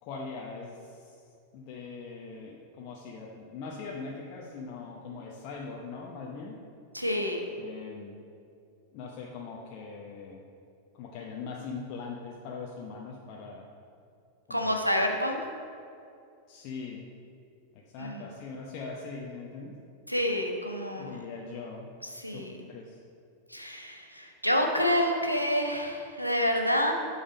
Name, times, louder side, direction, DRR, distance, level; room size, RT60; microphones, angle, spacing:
voice 1, 0.0-1.2 1.5-6.6 7.6-8.2 8.9-10.4 10.9-13.7 14.5-14.8 16.5-17.1 17.9-19.7 20.9-21.9 22.3-22.4 22.7-23.0, left 4 dB, 45° left, -2 dB, 0.9 m, -41 dB
voice 2, 6.9-7.5 14.5-15.4 18.0-18.3 20.1-21.2 22.0-22.5 23.5-26.9, equal, 90° right, 3 dB, 0.9 m, -28 dB
8.6 x 5.5 x 5.2 m, 2.4 s
figure-of-eight pair, 90°, 0 cm